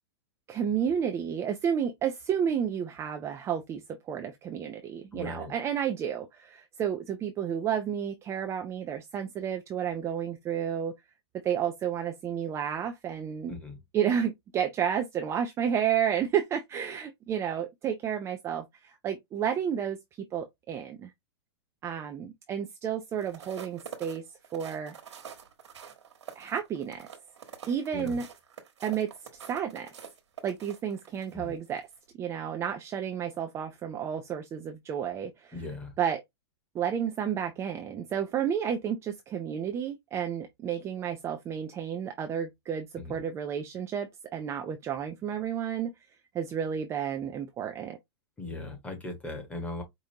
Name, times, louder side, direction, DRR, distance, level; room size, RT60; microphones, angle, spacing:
voice 1, 0.5-10.9 11.4-13.5 13.9-20.0 20.3-21.1 21.8-24.2 24.5-25.0 26.4-27.1 27.7-28.3 28.8-29.1 29.5-29.9 30.4-31.8 32.2-35.6 36.0-36.2 36.7-45.9 46.3-48.0, right 8 dB, 20° right, 0.4 m, -31 dB
voice 2, 5.1-5.5 13.5-13.8 27.9-28.2 31.3-31.5 35.5-35.9 43.0-43.2 48.4-49.8, left 2 dB, 10° left, 1.3 m, -38 dB
sound 1, 23.1-31.3 31.8-32.0, right 7 dB, 90° right, 1.3 m, -46 dB
5.0 x 2.5 x 2.8 m
hypercardioid pair, 140°, 14 cm